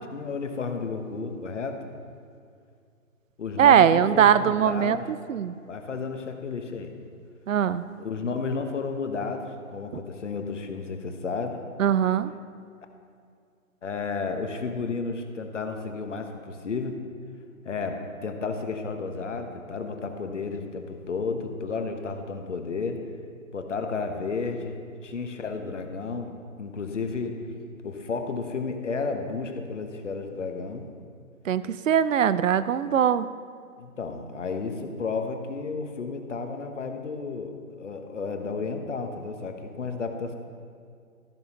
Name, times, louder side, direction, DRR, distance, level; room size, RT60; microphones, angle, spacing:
voice 1, 0.1-1.8 3.4-5.0 5.7-6.9 8.0-11.6 13.8-17.0 17.6-23.0 23.5-24.8 25.0-26.3 26.6-27.4 27.8-30.8 33.8-40.3, left 4 dB, 55° left, 5 dB, 1.1 m, -32 dB
voice 2, 3.6-5.0 5.3-5.6 7.5-7.9 11.8-12.3 31.5-33.3, right 9 dB, 65° right, 15 dB, 0.5 m, -21 dB
13.5 x 11.0 x 2.9 m, 2.2 s
hypercardioid pair, 165°, 43 cm